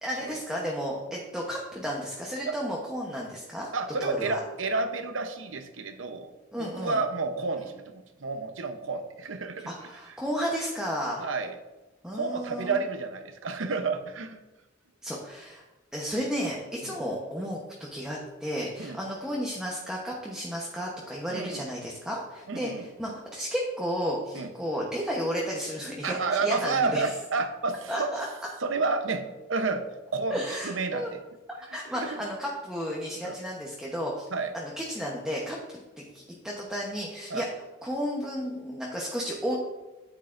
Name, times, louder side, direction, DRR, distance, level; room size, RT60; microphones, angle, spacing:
voice 1, 0.0-3.7 4.0-4.4 6.5-7.0 9.7-11.2 12.0-12.8 15.0-15.6 15.9-27.1 27.9-28.3 30.3-31.1 31.7-34.3 34.5-35.6 36.0-37.5 37.8-39.5, equal, 5° right, -3 dB, 0.9 m, -33 dB
voice 2, 3.7-6.3 6.8-9.7 11.2-11.5 12.1-14.4 18.8-19.0 21.3-21.6 22.5-22.8 24.3-24.5 26.0-28.1 28.6-29.9 30.1-31.0 31.9-32.2 33.2-33.4 34.3-34.5 37.3-37.4, right 4 dB, 90° right, 8 dB, 0.8 m, -30 dB
9.6 x 8.1 x 2.5 m, 1.1 s
head